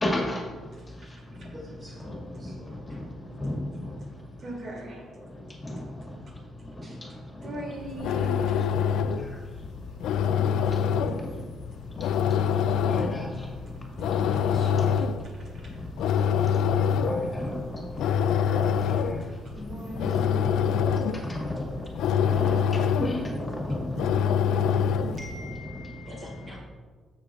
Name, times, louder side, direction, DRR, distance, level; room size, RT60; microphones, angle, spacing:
voice 1, 0.0-0.4 2.1-2.2 3.4-3.6 5.7-5.8 12.9-13.3 14.4-14.5 17.0-17.8 18.5-18.6 20.1-20.5 21.3-21.6 22.2-22.5 23.0-23.9, left 1 dB, 20° left, -1 dB, 1.9 m, -31 dB
voice 2, 1.5-2.1 25.2-26.6, left 2 dB, 30° right, -4 dB, 1.8 m, -44 dB
voice 3, 2.9-3.4 3.6-4.1 4.4-5.1 7.4-8.5 14.3-15.1 15.3-15.6 19.4-20.4 21.0-21.3 22.7-23.1 23.8-24.5, right 1 dB, 60° right, -2 dB, 2.8 m, -42 dB
sound 1, 7.8-25.4, left 7 dB, 85° left, 0.3 m, -26 dB
13.5 x 6.7 x 2.5 m, 1.5 s
cardioid pair, 90°, 0 cm